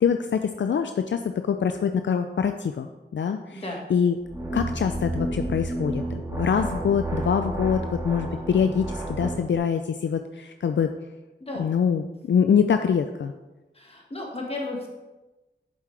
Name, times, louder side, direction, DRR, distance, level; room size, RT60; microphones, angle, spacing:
voice 1, 0.0-2.9 3.1-3.6 3.9-4.2 4.5-6.0 6.4-10.9 11.6-13.3, left 7 dB, 75° left, 7 dB, 0.4 m, -24 dB
voice 2, 3.5-3.8 11.4-11.7 13.7-14.9, left 2 dB, 30° left, -1 dB, 1.7 m, -34 dB
sound 1, 4.2-9.5, right 1 dB, 15° right, 1.6 m, -31 dB
8.3 x 7.2 x 3.3 m, 1.1 s
wide cardioid pair, 100°, 19 cm